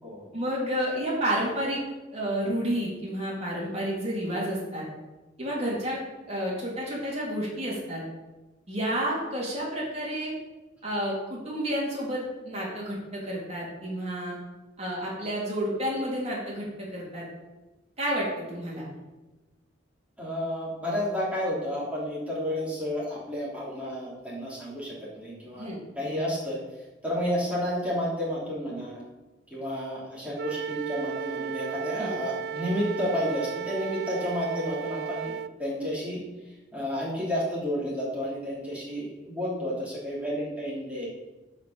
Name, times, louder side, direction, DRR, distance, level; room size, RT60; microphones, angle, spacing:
voice 1, 0.3-1.8 2.1-4.8 5.4-8.0 8.7-10.3 10.8-14.4 14.8-17.3 18.0-18.8 25.6-25.8 32.0-32.1, equal, 35° right, -5 dB, 3.1 m, -30 dB
voice 2, 20.2-26.6 27.0-29.0 29.5-36.2 36.7-41.1, equal, 5° right, -7 dB, 3.2 m, -31 dB
Wind instrument woodwind instrument, 30.4-35.5, right 7 dB, 55° right, 0.3 m, -34 dB
7.9 x 5.2 x 6.9 m, 1.1 s
head